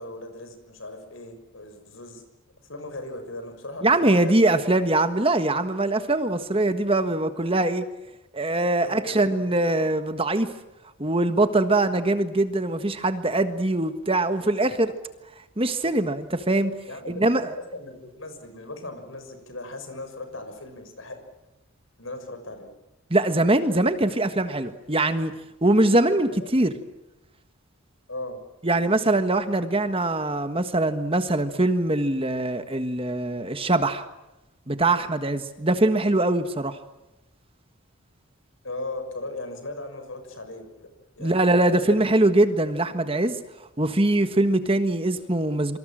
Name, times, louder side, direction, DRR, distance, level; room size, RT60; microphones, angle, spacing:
voice 1, 0.0-2.2 2.7-4.4 4.7-4.8 8.8-9.8 16.9-17.2 17.5-21.2 22.0-22.7 26.3-26.5 28.1-28.4 38.6-40.9 41.2-42.3, left 2 dB, 65° left, 7 dB, 6.6 m, -38 dB
voice 2, 3.8-7.9 8.3-10.5 11.0-14.9 15.6-16.7 17.1-17.5 23.1-25.3 25.6-26.8 28.6-34.1 34.7-36.8 41.2-43.4 43.8-45.8, right 2 dB, 25° right, 9 dB, 1.5 m, -22 dB
27.5 x 25.5 x 7.6 m, 0.97 s
head